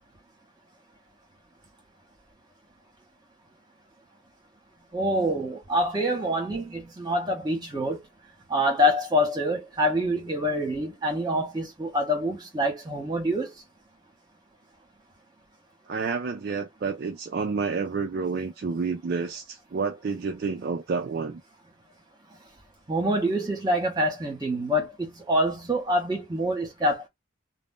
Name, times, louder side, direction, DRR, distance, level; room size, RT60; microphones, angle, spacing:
voice 1, 4.9-8.0 8.5-13.5 22.9-27.1, equal, 20° right, 1.0 m, -26 dB
voice 2, 15.9-21.4, right 4 dB, 50° right, 0.3 m, -29 dB
2.5 x 2.0 x 3.5 m
head